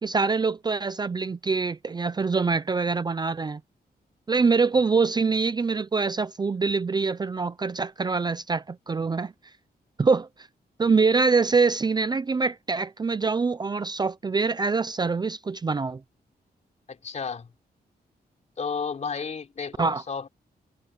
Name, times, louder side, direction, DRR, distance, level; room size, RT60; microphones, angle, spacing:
voice 1, 0.0-3.6 4.3-9.3 10.0-10.3 10.8-16.0 19.8-20.0, right 4 dB, 25° right, 0.5 m, -24 dB
voice 2, 16.9-17.5 18.6-20.3, left 5 dB, 45° left, 4.1 m, -32 dB
wide cardioid pair, 170°, 16 cm